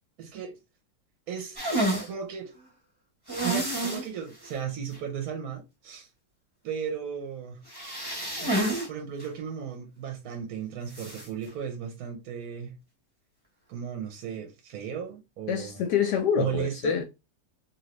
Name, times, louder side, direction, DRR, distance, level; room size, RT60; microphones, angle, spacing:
voice 1, 0.2-0.6 1.3-1.6 2.1-2.5 3.4-6.1 6.6-7.6 8.9-12.8 13.7-15.8 16.4-16.9, right 7 dB, 65° right, 1.1 m, -35 dB
sound 1, 1.6-2.1 3.3-4.1 4.4-4.5 4.9-5.0 7.7-8.9 9.2-9.3 10.9-11.3, right 1 dB, 15° right, 0.8 m, -29 dB
voice 2, 15.5-17.0, left 8 dB, 75° left, 1.1 m, -26 dB
3.0 x 2.6 x 2.9 m
omnidirectional pair, 2.0 m